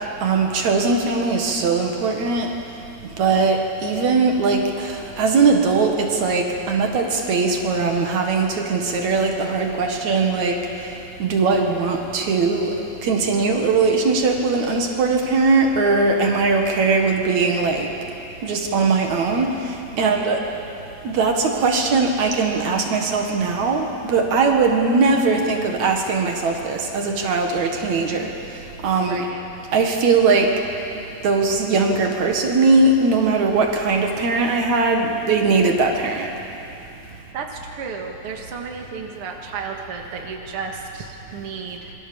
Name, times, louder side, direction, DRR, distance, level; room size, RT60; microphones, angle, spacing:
voice 1, 0.2-2.5 3.2-10.6 11.2-17.9 18.4-19.6 20.0-20.4 21.0-28.3 28.8-29.2 29.7-30.6 31.2-36.3, right 4 dB, 75° right, 2 dB, 3.1 m, -20 dB
voice 2, 16.1-16.6 19.9-20.3 29.0-29.5 37.1-41.9, right 5 dB, 50° right, 1 dB, 2.6 m, -33 dB
26.5 x 23.0 x 7.1 m, 2.8 s
omnidirectional pair, 3.3 m